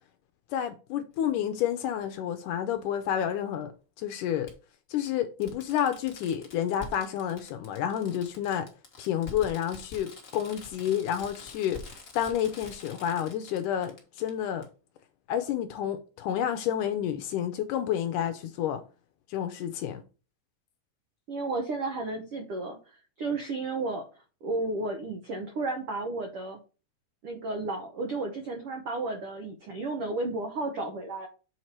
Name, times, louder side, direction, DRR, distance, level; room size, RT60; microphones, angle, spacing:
voice 1, 0.5-3.7 4.0-4.5 4.9-8.7 9.0-11.8 12.2-14.7 15.3-18.8 19.3-20.0, left 10 dB, 80° left, 1.9 m, -30 dB
Fireworks, 1.1-1.2 2.8-2.9 4.5-4.6 5.1-5.2 5.4-14.3 14.6-14.7, left 4 dB, 45° left, 0.9 m, -46 dB
voice 2, 21.3-24.0 24.4-26.6 27.2-31.3, right 2 dB, 75° right, 1.3 m, -33 dB
7.2 x 4.5 x 4.4 m
omnidirectional pair, 4.1 m